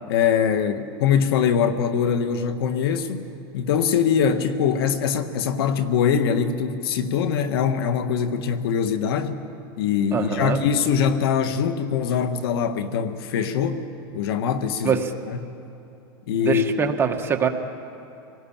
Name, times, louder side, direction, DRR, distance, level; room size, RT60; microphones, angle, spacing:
voice 1, 0.1-3.3 3.5-9.4 9.8-13.9 14.1-15.5 16.3-16.9, left 7 dB, 75° left, 9 dB, 1.7 m, -23 dB
voice 2, 10.1-10.6 14.8-15.1 16.4-17.5, right 7 dB, 20° right, 4 dB, 1.5 m, -23 dB
26.5 x 18.5 x 8.9 m, 2.8 s
supercardioid pair, 140°, 13 cm